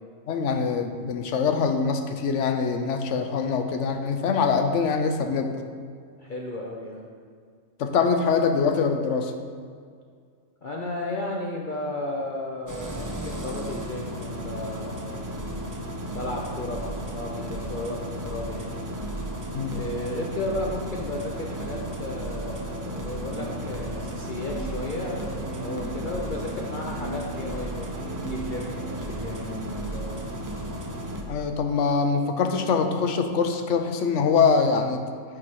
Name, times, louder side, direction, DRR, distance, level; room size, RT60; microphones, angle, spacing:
voice 1, 0.3-5.7 7.8-9.3 19.5-19.8 31.3-35.0, left 5 dB, 75° left, 6 dB, 1.0 m, -24 dB
voice 2, 6.2-7.1 10.6-15.3 16.1-18.8 19.7-30.2, left 2 dB, 50° left, -2 dB, 0.7 m, -34 dB
Engine starting, 12.7-31.2, right 1 dB, 25° right, 0.4 m, -34 dB
sound 1, 23.3-29.8, right 3 dB, 65° right, 1.1 m, -39 dB
8.6 x 4.8 x 4.7 m, 2.1 s
omnidirectional pair, 1.3 m